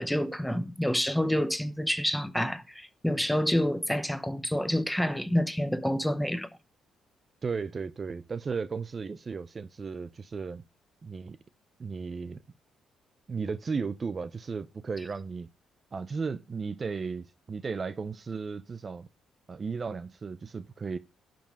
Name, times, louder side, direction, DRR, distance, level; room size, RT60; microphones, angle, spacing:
voice 1, 0.0-6.5, equal, 5° left, 0.9 m, -28 dB
voice 2, 7.4-10.6 11.0-11.4 11.8-12.4 13.3-15.5 15.9-19.1 19.5-21.0, right 5 dB, 40° right, 0.5 m, -35 dB
11.0 x 5.3 x 5.1 m
supercardioid pair, 70°, 0 cm